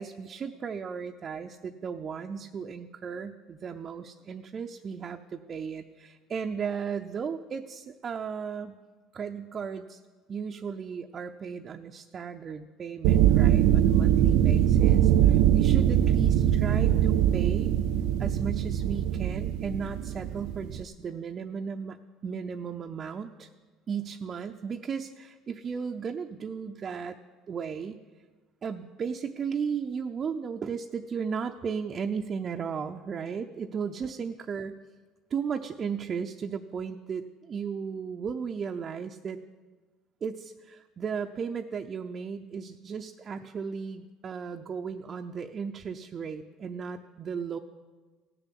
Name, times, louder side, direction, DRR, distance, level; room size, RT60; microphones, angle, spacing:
voice 1, 0.0-8.8 9.1-10.0 10.3-17.7 18.2-22.0 22.2-23.5 23.9-27.2 27.5-28.0 28.6-34.8 35.3-39.4 40.2-47.6, right 6 dB, 35° right, 4 dB, 0.6 m, -35 dB
sound 1, 13.0-20.8, right 11 dB, 75° right, 0.5 m, -22 dB
17.0 x 6.9 x 8.4 m, 1.4 s
cardioid pair, 125°, 0 cm